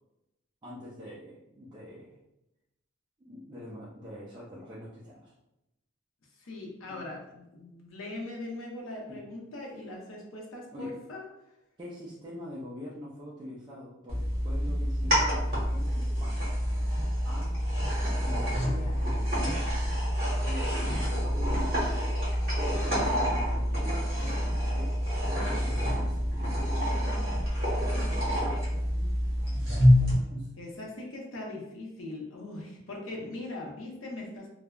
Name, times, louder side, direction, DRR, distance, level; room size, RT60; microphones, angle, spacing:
voice 1, 0.6-2.2 3.2-5.3 6.9-7.0 9.1-9.2 10.7-10.9 11.8-16.6 17.2-17.6 18.2-19.7 20.3-20.8 21.1-21.9 22.6-22.9 23.3-25.0 25.6-26.3 28.7-30.5 33.1-33.4, left 1 dB, 20° right, -7 dB, 0.4 m, -44 dB
voice 2, 6.4-11.3 30.6-34.5, left 2 dB, 75° left, -1 dB, 0.7 m, -41 dB
sound 1, 14.1-30.1, equal, 50° right, 1.2 m, -27 dB
3.2 x 2.0 x 2.3 m, 0.91 s
head